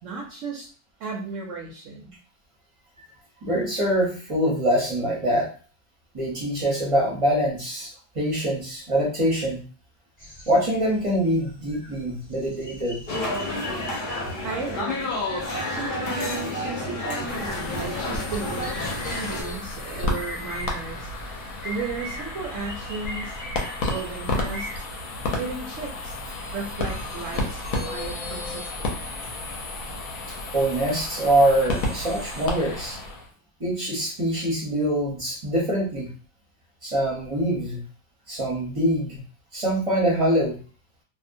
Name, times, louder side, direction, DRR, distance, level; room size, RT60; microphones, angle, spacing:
voice 1, 0.0-0.7 1.0-2.2 14.4-15.2 15.7-21.1 21.6-23.4 23.8-24.7 25.4-26.2 26.5-29.0, right 4 dB, 65° right, -1 dB, 0.8 m, -35 dB
voice 2, 3.4-5.5 6.1-9.6 10.5-13.0 30.5-33.0 33.6-36.1 36.8-37.8 38.3-39.2 39.5-40.6, right 1 dB, 30° right, -4 dB, 0.6 m, -24 dB
sound 1, 10.2-24.7, left 1 dB, 5° left, 0.8 m, -41 dB
sound 2, 13.1-19.4, left 2 dB, 90° left, 0.4 m, -30 dB
sound 3, 17.3-33.3, left 2 dB, 65° left, 1.0 m, -32 dB
2.7 x 2.1 x 2.5 m, 0.39 s
omnidirectional pair, 1.7 m